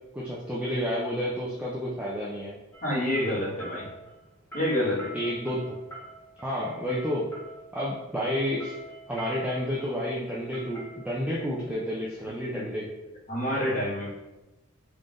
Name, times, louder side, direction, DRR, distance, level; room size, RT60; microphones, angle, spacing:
voice 1, 0.1-2.6 4.8-5.7 6.4-7.3 7.7-8.8 9.1-12.9, equal, 5° right, -7 dB, 0.4 m, -30 dB
sound 1, 2.7-12.6, right 1 dB, 10° left, 1.0 m, -46 dB
voice 2, 2.8-3.9 4.5-5.1 12.5-12.6 13.3-14.1, left 1 dB, 35° left, -8 dB, 1.5 m, -27 dB
3.7 x 3.3 x 2.5 m, 1.1 s
head